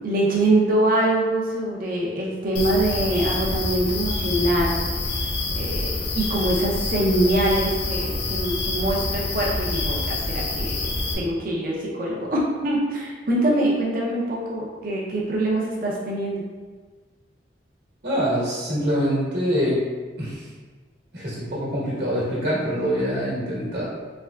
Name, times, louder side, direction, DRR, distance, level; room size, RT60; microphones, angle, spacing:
voice 1, 0.0-4.8 5.6-16.4, right 1 dB, 55° right, -4 dB, 0.6 m, -24 dB
sound 1, 2.6-11.1, left 2 dB, 65° left, 0.5 m, -27 dB
voice 2, 18.0-19.8 20.2-20.5 21.1-23.9, equal, 70° right, -6 dB, 1.2 m, -24 dB
3.4 x 3.3 x 2.3 m, 1.4 s
head